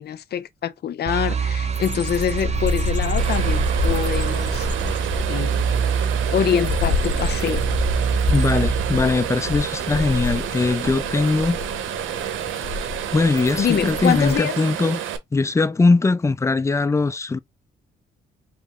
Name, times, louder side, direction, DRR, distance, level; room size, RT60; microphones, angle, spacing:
voice 1, 0.0-5.7 6.3-7.6 13.6-14.5, left 9 dB, 55° left, 0.6 m, -25 dB
sound 1, 1.1-10.2, right 6 dB, 35° right, 0.6 m, -25 dB
sound 2, 1.7-14.4, left 4 dB, 40° left, 1.1 m, -29 dB
sound 3, 3.2-15.2, right 10 dB, 80° right, 0.7 m, -30 dB
voice 2, 8.3-11.6 13.1-15.0 15.3-17.4, left 3 dB, 15° left, 0.4 m, -20 dB
5.1 x 2.1 x 3.7 m
cardioid pair, 90°, 20 cm